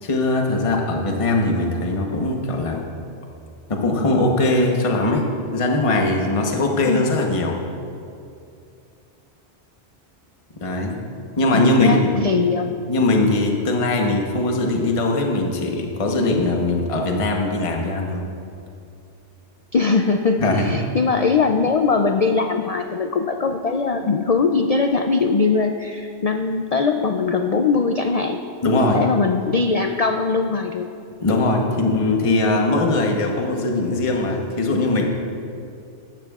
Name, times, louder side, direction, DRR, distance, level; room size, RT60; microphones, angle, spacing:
voice 1, 0.0-2.8 3.7-5.3 5.5-7.6 10.6-11.0 11.4-12.2 12.9-18.3 20.4-20.8 28.6-29.0 31.2-35.0, left 2 dB, 30° left, 1 dB, 1.0 m, -20 dB
voice 2, 11.5-12.8 19.7-28.4 28.8-30.9, left 4 dB, 60° left, 5 dB, 0.4 m, -21 dB
16.5 x 12.5 x 2.4 m, 2.5 s
omnidirectional pair, 1.2 m